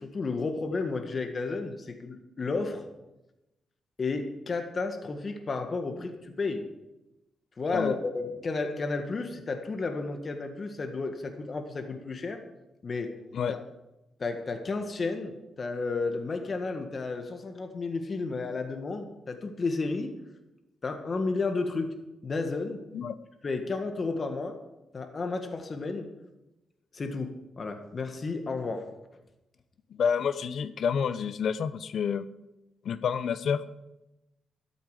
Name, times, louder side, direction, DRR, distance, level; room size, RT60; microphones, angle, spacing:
voice 1, 0.0-2.8 4.0-6.7 7.6-12.4 12.8-13.2 13.5-13.6 14.2-20.1 20.8-21.9 22.2-22.8 23.4-24.6 24.9-26.1 26.9-28.9, left 3 dB, 45° left, 5 dB, 1.8 m, -32 dB
voice 2, 29.9-32.3 32.8-33.6, left 7 dB, 70° left, 15 dB, 0.7 m, -29 dB
13.0 x 12.5 x 5.0 m, 0.95 s
cardioid pair, 80°, 0 cm